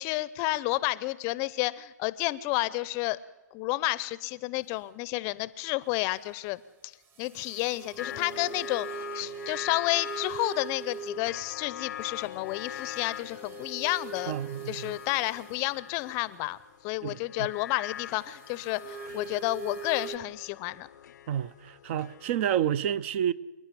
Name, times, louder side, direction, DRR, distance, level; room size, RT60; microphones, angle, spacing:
voice 1, 0.0-3.2 3.5-6.9 7.2-14.4 14.7-16.6 16.8-20.9, left 19 dB, 30° left, 0.7 m, -31 dB
sound 1, 7.2-11.4 12.0-15.7 18.2-20.2, right 7 dB, 20° right, 1.2 m, -42 dB
sound 2, 8.0-22.6, left 10 dB, 65° left, 0.6 m, -43 dB
voice 2, 14.3-14.9 17.0-17.5 21.3-23.3, right 10 dB, 40° right, 0.6 m, -30 dB
27.0 x 10.5 x 9.9 m
hypercardioid pair, 140°, 10 cm